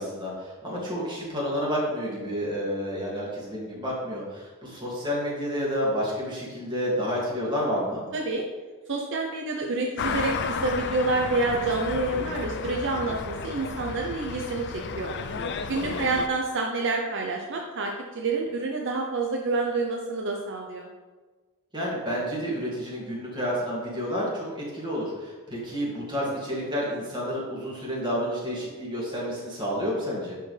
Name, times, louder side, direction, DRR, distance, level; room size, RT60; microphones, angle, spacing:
voice 1, 0.0-8.0 15.7-16.1 21.7-30.3, equal, 20° right, -5 dB, 2.2 m, -30 dB
voice 2, 8.1-8.4 8.9-15.1 15.7-20.9, right 3 dB, 55° right, 1 dB, 0.7 m, -28 dB
sound 1, 10.0-16.3, left 5 dB, 50° left, 0.5 m, -33 dB
10.5 x 4.4 x 3.3 m, 1.3 s
head